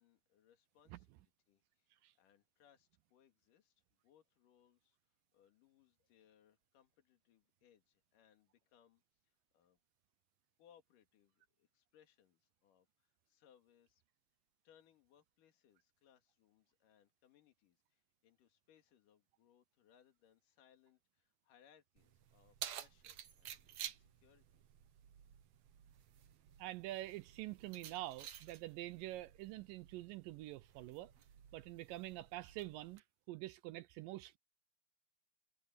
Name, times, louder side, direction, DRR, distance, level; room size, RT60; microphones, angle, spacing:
voice 1, 0.0-9.8 10.6-14.0 14.6-24.6, left 9 dB, 65° left, 3.6 m, -71 dB
Keys jangling, 22.0-33.0, right 10 dB, 60° right, 2.1 m, -53 dB
voice 2, 26.6-31.1 31.5-34.4, right 16 dB, 80° right, 2.2 m, -46 dB
omnidirectional pair, 4.2 m